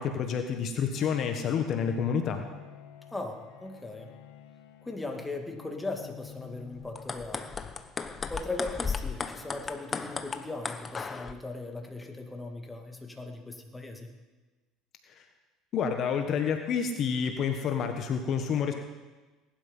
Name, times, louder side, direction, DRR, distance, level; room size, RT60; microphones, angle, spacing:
voice 1, 0.0-2.4 15.7-18.7, left 7 dB, 50° left, 5 dB, 1.4 m, -29 dB
Bowed string instrument, 0.9-7.6, left 11 dB, 80° left, 1.3 m, -48 dB
voice 2, 3.1-4.1 4.8-7.5 8.3-14.1, left 2 dB, 10° left, 3 dB, 2.4 m, -38 dB
sound 1, 6.8-11.3, left 5 dB, 25° left, 1.1 m, -35 dB
18.5 x 12.0 x 5.6 m, 1.2 s
supercardioid pair, 95°, 0 cm